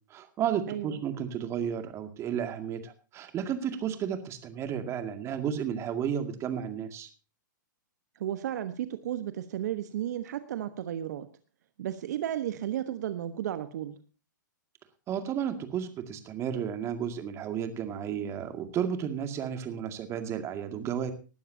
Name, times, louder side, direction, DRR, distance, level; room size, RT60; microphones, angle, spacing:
voice 1, 0.1-7.1 15.1-21.1, right 8 dB, 25° right, 8 dB, 2.2 m, -33 dB
voice 2, 0.7-1.0 8.2-11.3 11.8-14.0, right 11 dB, 60° right, 11 dB, 1.2 m, -33 dB
19.0 x 12.0 x 2.8 m, 0.34 s
hypercardioid pair, 120°, 10 cm